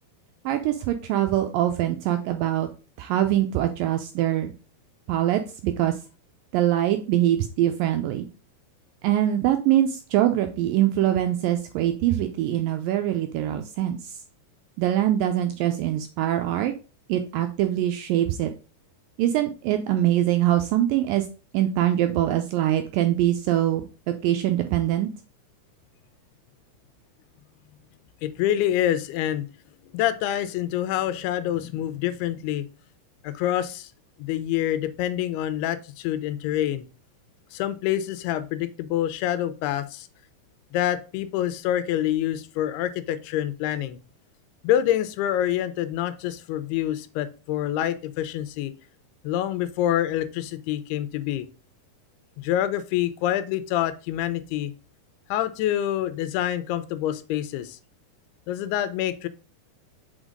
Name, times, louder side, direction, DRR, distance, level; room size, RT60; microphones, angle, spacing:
voice 1, 0.5-2.7 3.0-4.5 5.1-5.9 6.5-8.3 9.0-14.2 14.8-16.7 17.1-18.5 19.2-21.3 21.5-25.1, right 12 dB, 80° right, 6 dB, 2.0 m, -23 dB
voice 2, 28.2-29.5 29.9-32.7 33.2-33.9 34.2-36.9 37.5-40.1 40.7-44.0 44.6-48.7 49.2-51.5 52.4-54.7 55.3-57.8 58.5-59.3, left 12 dB, 90° left, 13 dB, 2.6 m, -26 dB
6.3 x 4.3 x 5.0 m, 0.35 s
omnidirectional pair, 4.5 m